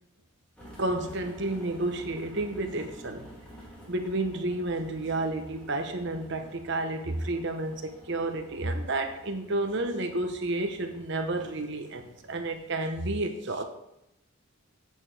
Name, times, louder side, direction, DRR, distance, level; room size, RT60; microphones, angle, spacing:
sound 1, 0.6-12.9, right 1 dB, 5° left, 2.7 m, -50 dB
voice 1, 0.8-3.3 3.9-13.6, right 2 dB, 55° right, 6 dB, 1.0 m, -31 dB
8.5 x 8.4 x 3.4 m, 0.84 s
head